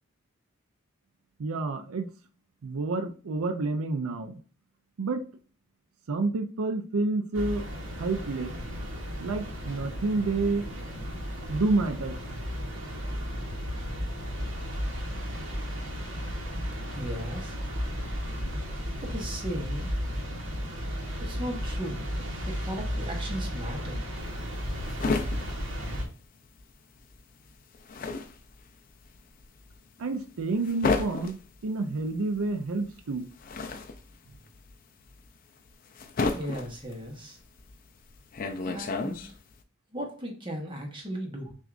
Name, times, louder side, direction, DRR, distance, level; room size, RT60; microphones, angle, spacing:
voice 1, 1.4-2.1 2.6-4.4 5.0-5.2 6.1-7.7 8.0-8.5 9.2-10.7 11.5-12.2 30.0-33.3, right 3 dB, 85° right, 7 dB, 0.5 m, -29 dB
sound 1, 7.3-26.0, equal, 65° right, 0.9 m, -34 dB
voice 2, 16.9-17.6 19.0-19.9 21.2-22.1 22.4-24.0 36.3-37.4 38.6-39.2 39.9-41.5, equal, 25° right, 1 dB, 0.9 m, -36 dB
sound 2, 24.2-26.7 27.0-39.6, left 3 dB, 40° left, 0.4 m, -33 dB
6.0 x 2.4 x 2.5 m, 0.39 s
head